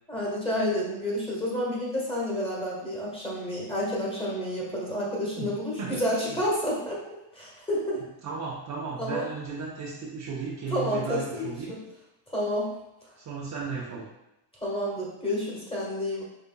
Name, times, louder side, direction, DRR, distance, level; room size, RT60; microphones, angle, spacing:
voice 1, 0.1-7.0 7.3-8.0 9.0-9.3 10.7-11.8 12.3-12.7 14.6-16.2, left 1 dB, 10° left, -4 dB, 1.5 m, -30 dB
voice 2, 8.2-11.7 13.2-14.1, right 5 dB, 35° right, -4 dB, 0.7 m, -35 dB
5.3 x 3.4 x 2.2 m, 0.91 s
cardioid pair, 115°, 49 cm